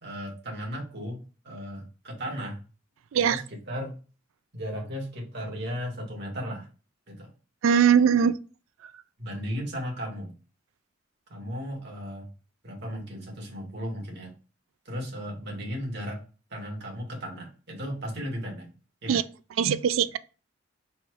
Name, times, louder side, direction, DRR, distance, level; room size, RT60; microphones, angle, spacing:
voice 1, 0.0-2.6 3.1-4.0 4.5-6.7 7.1-7.3 8.1-8.3 9.2-10.3 11.3-12.3 12.6-14.4 14.9-16.2 16.5-18.7 19.0-19.2, equal, 60° right, 1.7 m, -35 dB
voice 2, 3.1-3.4 7.6-8.3 8.8-8.9 19.1-19.2 19.6-20.2, right 7 dB, 80° right, 0.4 m, -21 dB
4.2 x 2.4 x 4.6 m
head